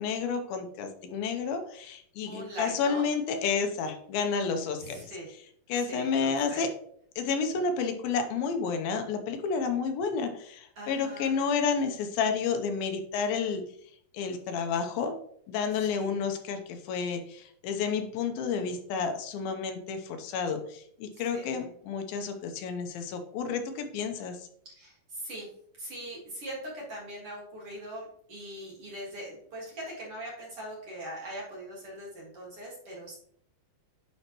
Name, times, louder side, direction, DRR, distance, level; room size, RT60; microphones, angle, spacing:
voice 1, 0.0-5.1 5.7-6.7 7.2-13.7 14.1-15.2 15.5-24.5, left 5 dB, 80° left, 6 dB, 2.6 m, -30 dB
voice 2, 2.2-3.1 4.8-5.3 5.7-6.6 10.8-11.4 15.9-16.2 21.1-21.7 24.8-25.5 25.8-33.2, right 1 dB, 45° right, -3 dB, 2.3 m, -41 dB
9.8 x 5.5 x 3.0 m, 0.64 s
omnidirectional pair, 4.3 m